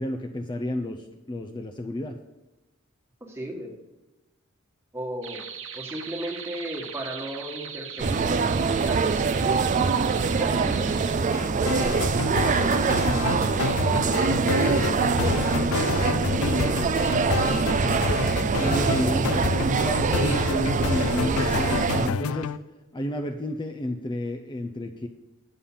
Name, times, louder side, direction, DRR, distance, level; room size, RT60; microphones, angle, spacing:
voice 1, 0.0-2.2 18.6-22.5 22.9-25.1, equal, 20° left, 5 dB, 0.5 m, -31 dB
voice 2, 3.2-3.7 4.9-5.4 5.7-8.5 8.8-9.8 10.3-12.0 12.3-13.6 14.1-18.3, right 1 dB, 10° right, 0 dB, 1.5 m, -37 dB
sound 1, 5.2-11.1, right 7 dB, 65° right, 0.9 m, -39 dB
sound 2, 8.0-22.1, right 4 dB, 35° right, 0.4 m, -24 dB
sound 3, 11.3-22.6, left 6 dB, 75° left, 0.4 m, -29 dB
8.5 x 5.6 x 7.3 m, 1.0 s
head